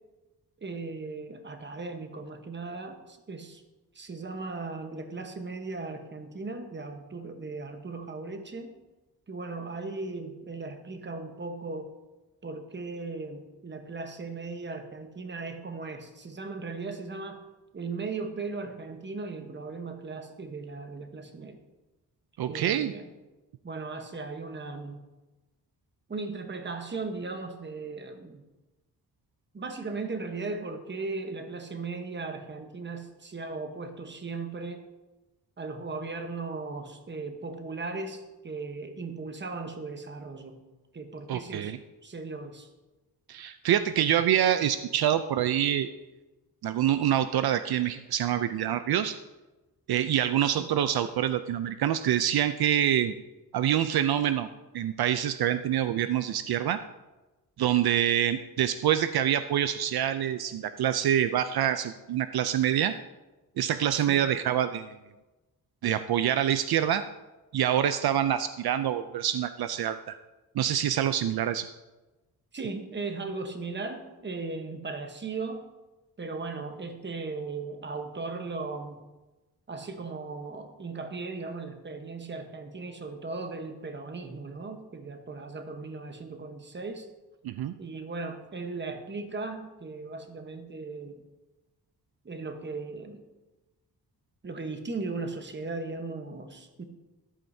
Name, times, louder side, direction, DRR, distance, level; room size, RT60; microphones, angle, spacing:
voice 1, 0.6-3.6 3.9-8.7 9.3-11.9 12.4-17.4 17.7-21.6 22.5-23.0 23.6-25.0 26.1-28.4 29.5-34.8 35.6-40.6 40.9-41.7 42.0-42.7 50.6-50.7 63.9-64.3 72.5-75.7 76.2-79.0 79.7-87.1 87.8-91.2 92.2-93.2 94.4-96.8, right 3 dB, 30° right, 6 dB, 1.0 m, -37 dB
voice 2, 22.4-22.9 41.3-41.8 43.3-45.9 46.6-49.2 49.9-53.1 53.5-54.5 54.7-56.8 57.6-62.9 63.6-64.9 65.8-67.0 67.5-70.2 70.6-71.7 87.4-87.7, right 10 dB, 75° right, 11 dB, 0.5 m, -26 dB
13.0 x 11.0 x 2.7 m, 1.1 s
wide cardioid pair, 135°, 38 cm